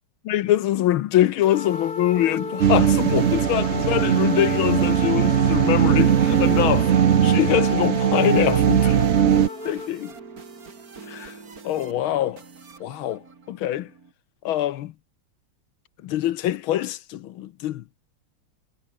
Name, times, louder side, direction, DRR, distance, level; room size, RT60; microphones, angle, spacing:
voice 1, 0.3-6.9 7.2-9.0 9.6-10.1 11.1-11.3 11.6-12.4 12.8-13.2 13.5-13.9 14.4-14.9 16.0-17.8, left 13 dB, 75° left, 1.6 m, -24 dB
sound 1, 1.4-9.9, left 3 dB, 45° left, 4.3 m, -34 dB
sound 2, 1.4-14.1, right 4 dB, 45° right, 2.9 m, -43 dB
sound 3, 2.6-9.5, right 9 dB, 65° right, 0.6 m, -19 dB
omnidirectional pair, 2.3 m